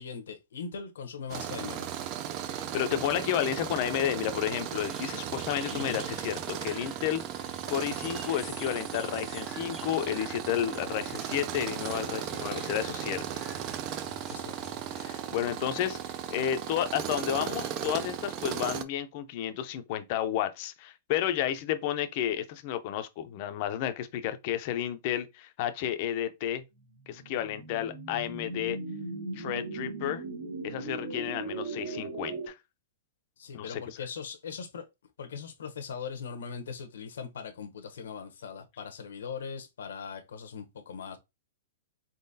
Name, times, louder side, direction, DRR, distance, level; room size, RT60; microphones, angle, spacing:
voice 1, 0.0-1.9 5.7-6.0 14.3-14.6 33.4-34.8 35.2-41.2, left 6 dB, 85° left, 0.8 m, -40 dB
Tools, 1.3-18.8, right 10 dB, 30° right, 0.4 m, -36 dB
voice 2, 2.5-7.2 7.7-13.2 15.0-26.6 27.1-28.8 29.3-30.2 30.6-32.5 33.5-33.8, left 11 dB, 35° left, 0.5 m, -31 dB
sound 1, 4.8-15.1, equal, 5° right, 0.7 m, -48 dB
sound 2, 26.9-32.5, right 3 dB, 60° right, 1.6 m, -38 dB
4.1 x 3.8 x 2.7 m
hypercardioid pair, 170°, 0 cm